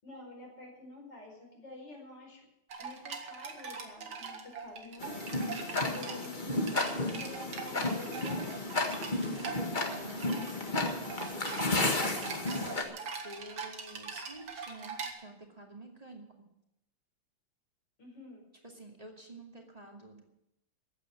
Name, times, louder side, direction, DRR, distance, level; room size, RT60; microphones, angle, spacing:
voice 1, 0.0-2.5 2.8-5.3 5.8-9.1 18.0-18.4, left 2 dB, 60° left, 0 dB, 5.6 m, -49 dB
sound 1, 2.7-15.1, right 5 dB, 85° right, 2.5 m, -42 dB
Tick-tock, 5.0-12.8, left 2 dB, 25° left, 1.6 m, -33 dB
voice 2, 9.6-12.0 12.7-16.5 18.6-20.2, right 2 dB, 20° right, 0 dB, 2.5 m, -50 dB
14.5 x 9.1 x 8.0 m, 0.85 s
omnidirectional pair, 2.2 m